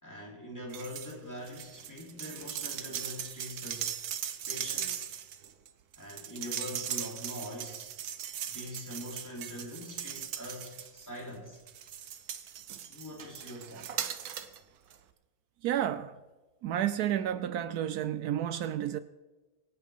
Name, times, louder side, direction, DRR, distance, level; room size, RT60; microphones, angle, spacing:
voice 1, 0.0-3.9 4.5-5.1 6.0-7.9 8.5-11.6 12.9-13.9, equal, 10° left, 3.7 m, -43 dB
sound 1, 0.7-1.1 1.4-11.2 11.7-14.6 14.9-15.0, right 9 dB, 60° right, 1.2 m, -39 dB
voice 2, 15.6-16.1 16.6-19.0, right 11 dB, 90° right, 0.8 m, -31 dB
25.0 x 9.3 x 3.7 m
omnidirectional pair, 2.2 m